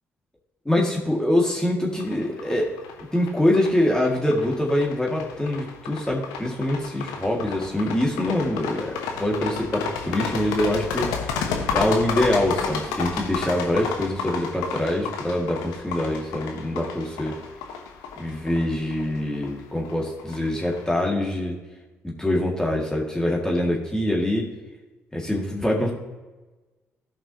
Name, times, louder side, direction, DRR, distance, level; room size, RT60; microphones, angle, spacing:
voice 1, 0.7-2.7 3.1-11.1 11.7-17.4 18.2-21.6 22.0-24.5 25.1-25.9, left 1 dB, 10° left, -2 dB, 2.1 m, -24 dB
sound 1, 2.0-20.8, left 6 dB, 75° left, 1.0 m, -32 dB
15.0 x 5.5 x 2.9 m, 1.2 s
hypercardioid pair, 45°, 7 cm